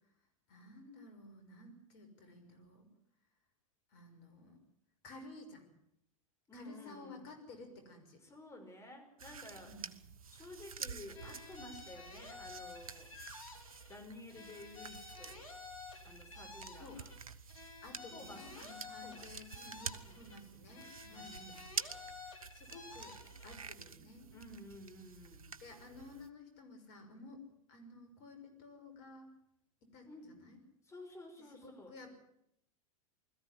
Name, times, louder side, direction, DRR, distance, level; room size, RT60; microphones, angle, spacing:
voice 1, 0.5-2.9 3.9-4.6 5.0-5.7 6.5-8.2 9.6-9.9 16.7-17.0 17.8-21.4 21.9-23.2 23.4-24.3 25.6-27.4 27.7-29.3 29.9-30.6 31.6-32.2, left 2 dB, 50° left, 7 dB, 5.9 m, -54 dB
voice 2, 6.5-7.3 8.2-9.8 10.3-13.1 13.9-15.5 16.0-17.1 18.1-18.7 19.0-19.3 20.1-20.2 21.1-21.7 24.3-25.5 30.1-30.3 30.8-32.0, left 1 dB, 15° left, 5 dB, 5.5 m, -52 dB
sound 1, 9.2-26.3, right 6 dB, 85° right, 1.0 m, -49 dB
sound 2, 11.1-14.0 14.3-17.2 17.5-20.4 20.7-23.6, left 4 dB, 75° left, 4.0 m, -52 dB
21.0 x 14.5 x 9.9 m, 0.77 s
figure-of-eight pair, 95°, 18 cm